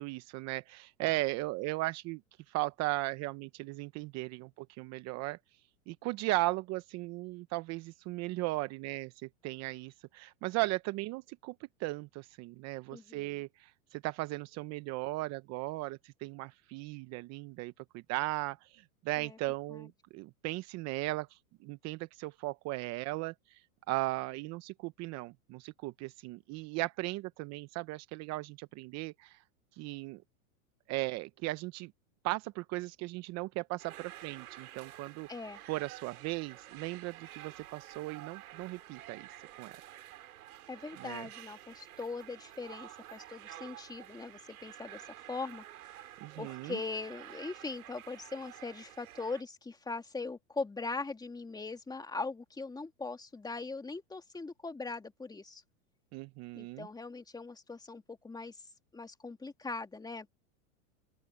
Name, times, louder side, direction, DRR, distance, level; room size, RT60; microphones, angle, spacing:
voice 1, 0.0-2.2 2.5-5.4 5.9-11.5 11.8-23.6 23.9-29.4 29.8-30.2 30.9-31.9 32.2-35.3 35.7-39.3 39.6-39.8 41.0-41.3 46.2-46.8 56.1-56.9, right 20 dB, 40° right, 0.8 m, -37 dB
voice 2, 12.9-13.4 19.2-19.4 19.7-19.9 35.3-35.6 40.7-45.6 46.0-46.1 46.4-55.6 56.5-58.6 58.9-60.4, left 3 dB, 10° left, 2.6 m, -41 dB
sound 1, 33.8-49.4, right 13 dB, 80° right, 5.6 m, -50 dB
open air
supercardioid pair, 130°, 43 cm